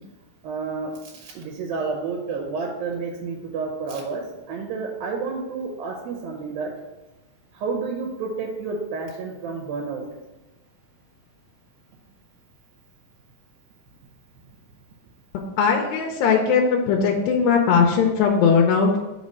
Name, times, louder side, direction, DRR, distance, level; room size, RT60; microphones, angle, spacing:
voice 1, 0.4-6.7 7.5-10.0, right 4 dB, 85° right, -1 dB, 2.8 m, -30 dB
voice 2, 15.6-19.0, left 6 dB, 90° left, 1 dB, 2.5 m, -19 dB
6.0 x 4.2 x 6.1 m, 1.0 s
omnidirectional pair, 4.1 m